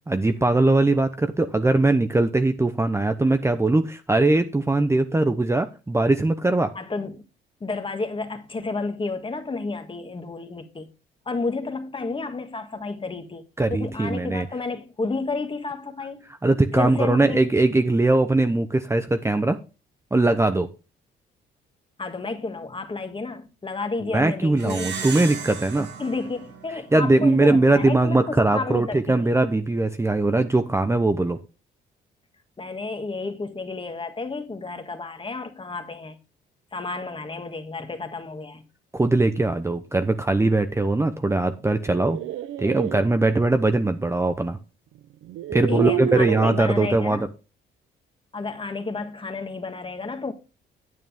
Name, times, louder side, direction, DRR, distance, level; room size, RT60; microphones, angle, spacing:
voice 1, 0.1-6.7 13.6-14.5 16.4-19.6 20.1-20.7 24.1-25.9 26.9-31.4 38.9-42.2 42.6-44.6 45.5-47.3, right 2 dB, 15° right, 0.8 m, -21 dB
voice 2, 6.7-7.2 7.6-10.9 11.2-13.4 13.7-16.3 16.7-17.5 22.0-24.9 25.8-29.3 32.6-36.2 36.7-38.6 45.7-47.3 48.3-50.3, left 3 dB, 25° left, 1.6 m, -31 dB
Plucked string instrument, 24.6-27.4, right 6 dB, 60° right, 2.0 m, -35 dB
sound 1, 41.8-43.0 44.5-44.6 45.2-46.6, right 12 dB, 80° right, 0.7 m, -29 dB
9.4 x 8.5 x 3.5 m
cardioid pair, 90°, 20 cm